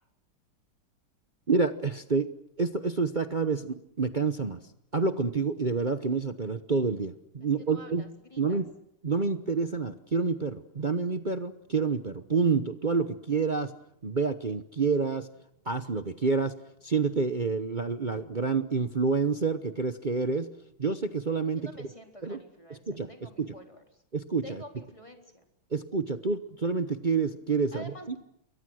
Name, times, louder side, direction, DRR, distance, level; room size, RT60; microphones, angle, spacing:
voice 1, 1.5-2.3 2.6-4.6 4.9-8.0 8.4-8.7 9.0-13.7 14.0-15.3 15.7-16.5 16.8-20.5 20.8-21.7 22.2-22.4 22.7-23.1 23.4-23.5 24.1-24.6 25.7-27.9, right 4 dB, 40° right, 9 dB, 0.7 m, -28 dB
voice 2, 7.4-8.6 21.6-24.0 24.4-25.5 27.7-28.2, equal, 15° left, 4 dB, 3.7 m, -48 dB
29.0 x 23.0 x 6.4 m, 0.75 s
omnidirectional pair, 2.3 m